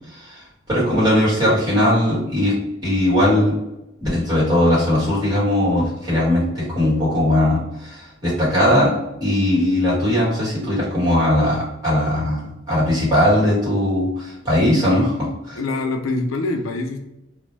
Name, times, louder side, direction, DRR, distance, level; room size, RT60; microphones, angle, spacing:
voice 1, 0.7-2.5 2.8-3.5 4.0-8.9 9.2-15.6, left 1 dB, 20° right, -9 dB, 1.4 m, -19 dB
voice 2, 15.5-17.0, left 2 dB, 85° left, 4 dB, 0.4 m, -24 dB
2.5 x 2.1 x 3.1 m, 0.91 s
head